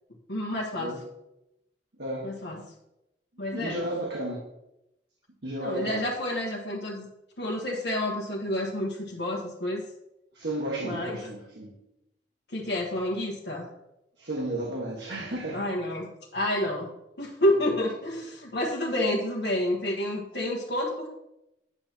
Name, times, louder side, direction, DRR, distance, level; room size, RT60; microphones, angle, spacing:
voice 1, 0.3-0.9 2.2-2.6 3.4-3.9 5.6-7.1 7.4-9.8 10.8-11.2 12.5-13.7 15.5-16.9 17.2-21.1, left 1 dB, 65° left, -4 dB, 1.3 m, -29 dB
voice 2, 2.0-2.3 3.5-4.4 5.4-6.1 10.3-11.7 14.2-15.7, right 1 dB, 85° right, -1 dB, 1.5 m, -33 dB
9.8 x 8.1 x 2.9 m, 0.87 s
head